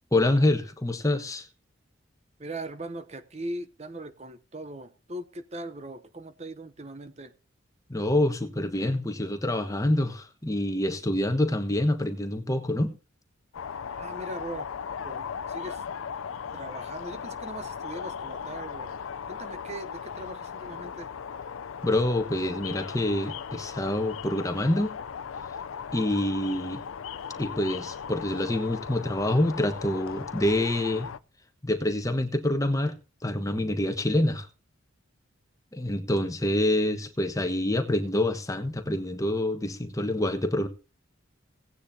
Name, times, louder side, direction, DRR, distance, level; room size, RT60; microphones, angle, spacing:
voice 1, 0.1-1.5 7.9-12.9 21.8-24.9 25.9-26.8 27.4-31.1 31.6-33.0 33.2-34.5 35.7-40.7, left 1 dB, 15° left, 1.1 m, -26 dB
voice 2, 2.4-7.3 14.0-14.7 15.0-15.8 16.5-18.9 19.3-21.1, right 1 dB, 30° right, 0.7 m, -39 dB
sound 1, 13.5-31.2, left 7 dB, 80° left, 0.5 m, -38 dB
17.5 x 9.6 x 2.7 m
head